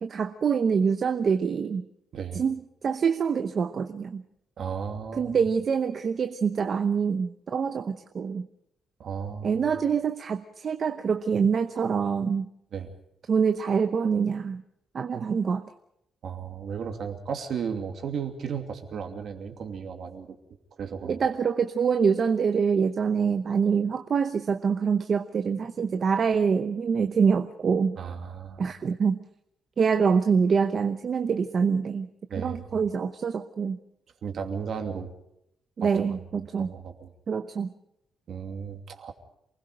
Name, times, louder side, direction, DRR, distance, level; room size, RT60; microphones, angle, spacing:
voice 1, 0.0-1.8 2.3-4.2 5.2-8.5 9.4-12.5 13.3-14.6 14.9-15.6 21.1-28.0 28.6-29.2 29.8-32.1 32.4-33.8 35.8-36.7 37.3-37.7, right 6 dB, 40° right, 8 dB, 0.9 m, -25 dB
voice 2, 2.1-2.4 4.6-5.4 9.0-9.7 12.7-12.9 16.2-20.4 20.8-21.3 28.0-28.7 32.3-32.9 34.2-35.1 35.8-37.1 38.3-39.1, right 6 dB, 55° right, 4 dB, 2.8 m, -35 dB
28.0 x 20.5 x 5.1 m, 0.78 s
cardioid pair, 170°, 0 cm